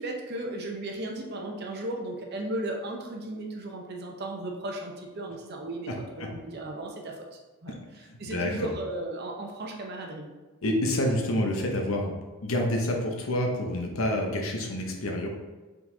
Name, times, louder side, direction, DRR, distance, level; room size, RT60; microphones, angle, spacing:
voice 1, 0.0-5.9 6.2-7.3 7.6-7.7 8.2-10.2, right 1 dB, 50° right, 1 dB, 0.7 m, -35 dB
voice 2, 8.1-8.7 10.6-12.1 12.4-15.3, left 1 dB, 75° left, 1 dB, 0.8 m, -28 dB
4.8 x 3.9 x 2.7 m, 1.2 s
head